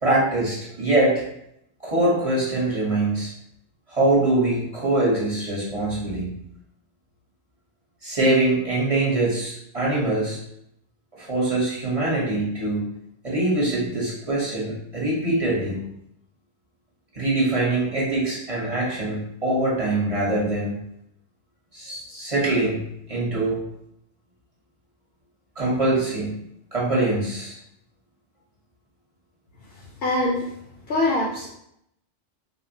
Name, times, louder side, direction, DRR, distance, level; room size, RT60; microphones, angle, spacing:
voice 1, 0.0-1.2 1.8-3.3 3.9-6.3 8.0-10.4 11.1-12.9 13.2-15.8 17.1-20.8 21.7-22.8 23.1-23.6 25.6-26.4 26.7-27.6, right 2 dB, 35° right, -6 dB, 0.9 m, -23 dB
voice 2, 30.0-30.5 30.9-31.5, left 2 dB, 60° left, -2 dB, 0.7 m, -23 dB
3.6 x 2.0 x 2.6 m, 0.76 s
omnidirectional pair, 1.2 m